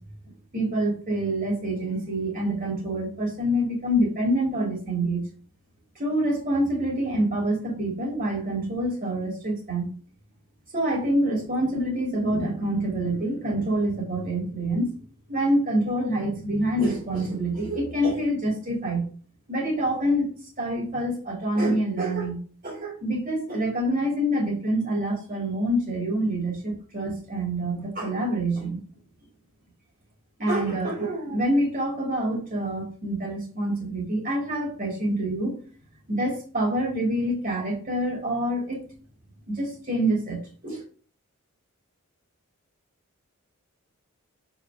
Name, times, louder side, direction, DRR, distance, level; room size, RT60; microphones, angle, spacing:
voice 1, 0.5-5.2 6.0-9.9 10.7-15.0 15.3-19.1 19.5-20.3 20.6-28.8 30.4-35.5 36.1-38.9 39.5-40.4 40.6-40.8, right 1 dB, 40° right, -1 dB, 3.2 m, -26 dB
7.1 x 5.0 x 5.0 m, 0.41 s
head